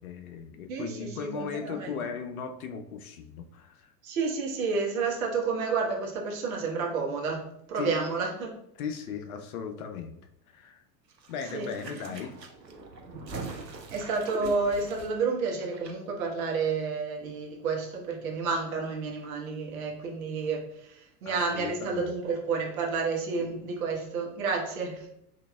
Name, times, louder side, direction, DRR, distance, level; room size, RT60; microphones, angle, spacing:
voice 1, 0.0-3.9 7.7-7.9 8.7-10.2 10.5-10.8 11.3-12.3 21.2-22.1, left 6 dB, 65° left, 7 dB, 0.6 m, -37 dB
voice 2, 0.7-1.9 4.0-8.5 11.5-11.7 13.9-25.1, right 4 dB, 55° right, 0 dB, 1.1 m, -30 dB
sound 1, 11.1-15.9 16.2-16.3, right 3 dB, 85° right, 0.7 m, -43 dB
3.8 x 2.8 x 2.3 m, 0.75 s
figure-of-eight pair, 85°, 49 cm